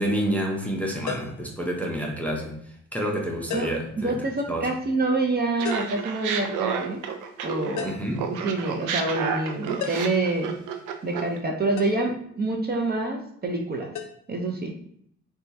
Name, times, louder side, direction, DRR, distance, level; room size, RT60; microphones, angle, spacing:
voice 1, 0.0-2.6 2.9-4.1 4.5-4.7 7.8-8.2, right 1 dB, 5° left, -1 dB, 0.7 m, -28 dB
sound 1, 1.1-1.5 3.5-3.9 5.6-6.0 7.8-8.2 9.8-10.2 11.8-12.0 13.9-14.1, left 7 dB, 75° left, 0.6 m, -34 dB
voice 2, 4.0-7.0 7.4-7.9 8.3-10.5 11.0-13.9 14.3-14.7, right 2 dB, 35° right, 1 dB, 0.6 m, -27 dB
Laughter, 5.6-7.9 8.2-11.4, right 7 dB, 90° right, 0.5 m, -30 dB
4.2 x 2.4 x 2.7 m, 0.67 s
cardioid pair, 90°, 30 cm